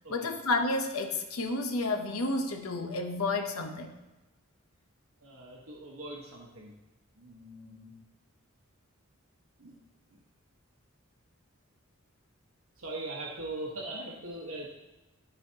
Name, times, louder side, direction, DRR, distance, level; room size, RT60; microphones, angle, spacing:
voice 1, 0.1-3.9, left 2 dB, 85° left, 4 dB, 0.8 m, -31 dB
voice 2, 5.2-6.7 7.2-7.9 9.6-9.8 12.8-14.7, right 2 dB, 80° right, -3 dB, 1.2 m, -41 dB
12.0 x 4.2 x 2.8 m, 1.1 s
head